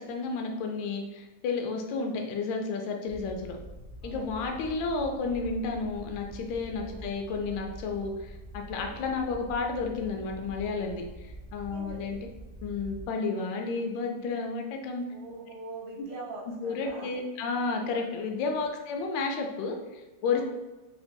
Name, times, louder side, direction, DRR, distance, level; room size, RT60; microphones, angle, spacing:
voice 1, 0.0-3.6 4.0-12.2 12.6-15.0 16.6-20.4, left 4 dB, 75° left, 3 dB, 1.2 m, -32 dB
sound 1, 3.1-13.1, right 1 dB, 55° left, 0.4 m, -45 dB
voice 2, 4.0-4.6 6.8-7.8 8.8-9.2 11.7-12.2 15.1-17.1 20.3-20.4, right 2 dB, 80° right, -2 dB, 1.5 m, -44 dB
3.4 x 2.9 x 2.6 m, 1.1 s
omnidirectional pair, 2.4 m